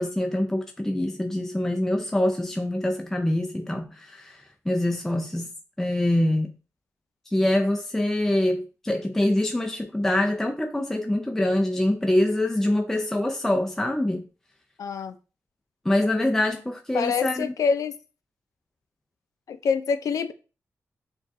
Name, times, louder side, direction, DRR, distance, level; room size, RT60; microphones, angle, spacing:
voice 1, 0.0-5.5 5.8-6.5 7.3-14.2 15.9-17.5, left 1 dB, 5° left, 0.4 m, -25 dB
voice 2, 14.8-15.1 16.9-18.0 19.5-20.3, left 6 dB, 80° left, 0.4 m, -25 dB
6.5 x 2.3 x 2.6 m
wide cardioid pair, 95°, 6 cm